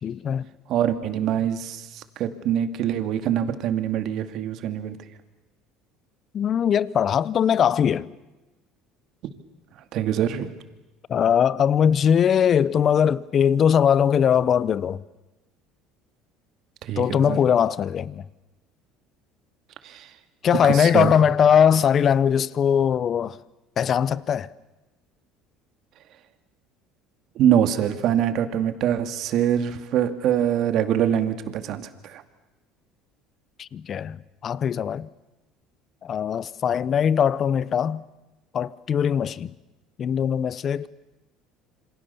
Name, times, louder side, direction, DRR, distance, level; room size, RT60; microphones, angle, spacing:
voice 1, 0.0-0.5 6.3-8.1 11.1-15.0 17.0-18.2 20.4-23.4 23.8-24.5 33.6-35.1 36.0-38.0 38.5-39.5 40.0-40.9, left 8 dB, 40° left, 0.9 m, -21 dB
voice 2, 0.7-5.0 9.9-10.5 16.8-17.4 19.8-20.1 20.7-21.1 27.4-32.2, right 10 dB, 60° right, 2.3 m, -24 dB
27.5 x 25.5 x 7.0 m
supercardioid pair, 110°, 0 cm